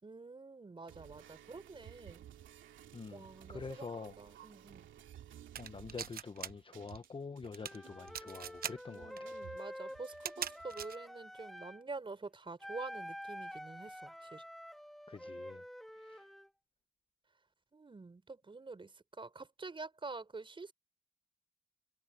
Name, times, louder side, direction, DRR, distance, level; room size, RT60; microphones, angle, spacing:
voice 1, 0.0-2.2 3.1-4.9 8.9-14.4 17.7-20.7, right 3 dB, 25° right, 5.0 m, -47 dB
sound 1, 0.9-10.9, right 11 dB, 75° right, 2.6 m, -56 dB
voice 2, 2.9-4.1 5.6-9.3 15.1-15.6 15.9-16.3, left 4 dB, 25° left, 1.0 m, -46 dB
sound 2, 5.6-6.5 6.7-7.1 7.4-7.8 8.1-8.7 9.2-9.3 10.1-11.0, right 8 dB, 50° right, 0.9 m, -40 dB
Wind instrument woodwind instrument, 7.6-11.8 12.6-16.5, equal, ahead, 2.5 m, -48 dB
cardioid pair, 90°, 20 cm